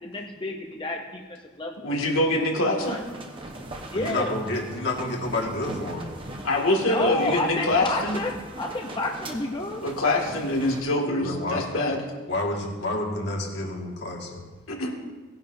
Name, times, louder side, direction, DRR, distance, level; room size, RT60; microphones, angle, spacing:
voice 1, 0.0-1.2 1.6-1.7 2.8-3.0 3.9-4.3 6.9-9.8, left 1 dB, 25° left, 1 dB, 0.7 m, -30 dB
voice 2, 1.8-3.0 6.4-8.2 9.8-12.0 12.6-12.7 14.7-14.9, left 1 dB, 90° left, 0 dB, 2.2 m, -24 dB
sound 1, 2.8-10.8, right 1 dB, 25° right, 1.0 m, -40 dB
voice 3, 3.9-6.1 11.2-11.6 12.3-14.4, left 2 dB, 55° left, -1 dB, 1.9 m, -29 dB
18.5 x 10.5 x 2.7 m, 1.3 s
head